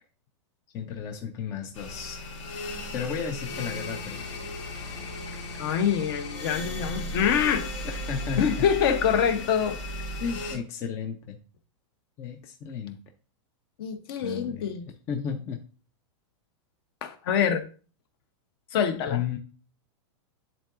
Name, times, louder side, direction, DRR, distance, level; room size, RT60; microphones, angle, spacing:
voice 1, 0.7-2.2 2.9-4.2 8.1-8.7 10.2-11.4 12.2-13.0 14.2-15.6 19.1-19.4, left 7 dB, 15° left, 0.4 m, -33 dB
sound 1, 1.7-10.6, left 1 dB, 65° left, 2.3 m, -36 dB
voice 2, 5.6-7.7 8.4-9.8 13.8-14.8 17.0-17.6 18.7-19.2, left 8 dB, 50° left, 0.8 m, -25 dB
10.0 x 3.7 x 2.5 m
supercardioid pair, 165°, 16 cm